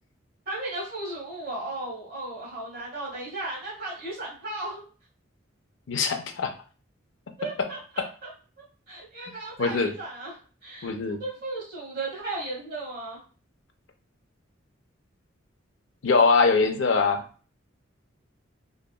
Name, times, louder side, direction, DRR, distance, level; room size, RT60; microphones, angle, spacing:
voice 1, 0.5-4.8 7.4-8.3 8.6-10.9 11.2-13.2, right 2 dB, 50° right, -4 dB, 1.2 m, -35 dB
voice 2, 5.9-6.5 9.6-9.9 10.8-11.2 16.0-17.2, left 4 dB, 65° left, 6 dB, 0.4 m, -22 dB
2.7 x 2.4 x 2.3 m, 0.38 s
head